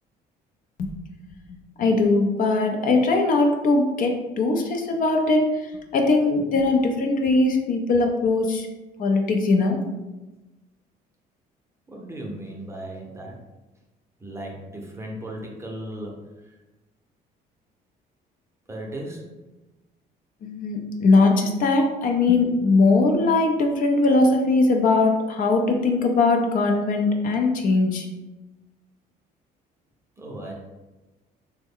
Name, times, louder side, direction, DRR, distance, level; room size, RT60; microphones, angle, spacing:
voice 1, 1.8-5.5 5.9-8.7 9.0-9.8 20.4-28.0, left 3 dB, 55° left, 3 dB, 0.5 m, -20 dB
voice 2, 11.9-13.4 14.2-16.2 18.7-19.2 30.2-30.5, right 1 dB, 15° right, -1 dB, 0.6 m, -36 dB
3.3 x 2.1 x 3.6 m, 1.1 s
cardioid pair, 110°, 17 cm